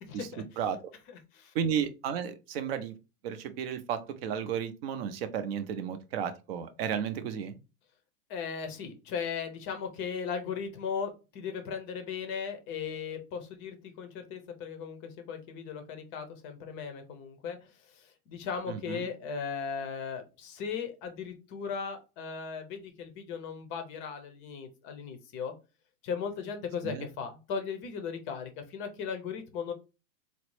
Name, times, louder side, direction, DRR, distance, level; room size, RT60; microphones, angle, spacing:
voice 1, 1.5-3.0 3.2-7.6 18.7-19.1 26.8-27.1, right 8 dB, 40° right, 9 dB, 0.5 m, -33 dB
voice 2, 8.3-25.5 26.0-29.7, left 6 dB, 25° left, 7 dB, 0.6 m, -37 dB
4.0 x 2.0 x 3.1 m, 0.29 s
hypercardioid pair, 130°, 46 cm